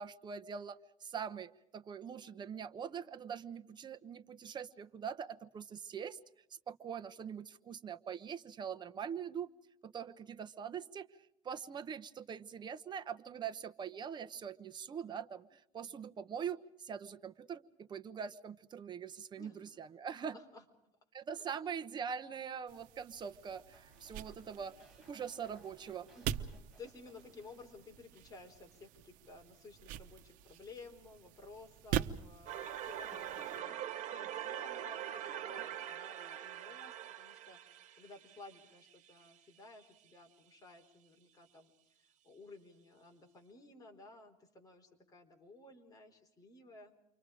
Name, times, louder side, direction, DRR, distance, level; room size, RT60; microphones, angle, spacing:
voice 1, 0.0-6.2 6.7-9.5 9.8-11.1 11.4-20.4 21.1-24.7 25.1-26.1, right 7 dB, 35° right, 11 dB, 1.1 m, -43 dB
voice 2, 20.1-20.6 21.4-21.5 26.1-37.6 37.9-41.7 42.2-46.9, left 3 dB, 25° left, 3 dB, 4.2 m, -55 dB
sound 1, 22.7-33.6, right 10 dB, 85° right, 1.0 m, -44 dB
sound 2, 23.7-28.2 28.4-28.9, right 1 dB, ahead, 7.8 m, -65 dB
sound 3, 32.5-39.3, right 10 dB, 65° right, 1.7 m, -43 dB
30.0 x 25.0 x 5.0 m, 0.81 s
cardioid pair, 145°, 13 cm